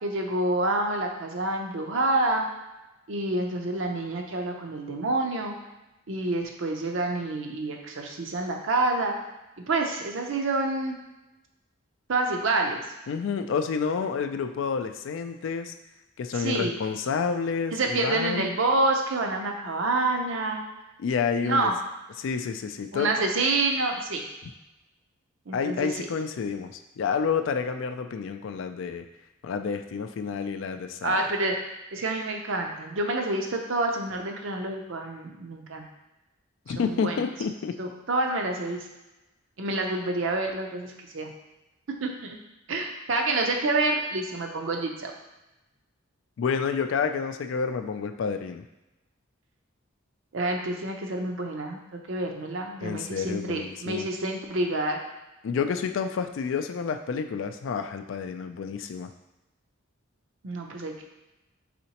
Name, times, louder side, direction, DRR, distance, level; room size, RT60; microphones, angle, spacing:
voice 1, 0.0-2.5 3.1-5.6 6.1-9.1 9.6-11.0 12.1-12.8 16.3-16.7 17.7-20.6 21.4-21.7 22.9-24.2 25.5-26.1 31.0-35.9 36.7-37.2 37.8-38.9 39.6-41.3 41.9-42.4 42.7-45.1 50.3-51.8 52.1-55.0 60.4-61.0, right 2 dB, 65° right, 2 dB, 0.6 m, -28 dB
voice 2, 13.1-15.7 16.2-18.5 21.0-21.7 22.2-23.1 25.5-29.1 29.4-31.2 36.7-37.8 46.4-48.6 52.8-54.1 55.4-59.1, left 6 dB, 65° left, 7 dB, 0.3 m, -29 dB
4.2 x 3.8 x 2.9 m, 0.99 s
head